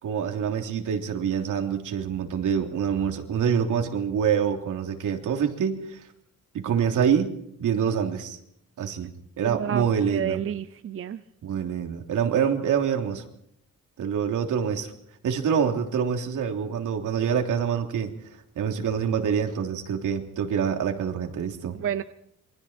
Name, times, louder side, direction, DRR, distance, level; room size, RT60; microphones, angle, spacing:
voice 1, 0.0-6.0 6.5-7.3 7.6-8.4 8.8-9.1 9.4-10.4 11.4-13.2 14.0-14.9 15.2-18.1 18.5-21.8, right 7 dB, 75° right, 4 dB, 3.3 m, -26 dB
voice 2, 9.4-11.2 21.7-22.0, right 9 dB, 45° right, 13 dB, 0.7 m, -30 dB
27.5 x 24.5 x 4.5 m, 0.73 s
cardioid pair, 150°, 31 cm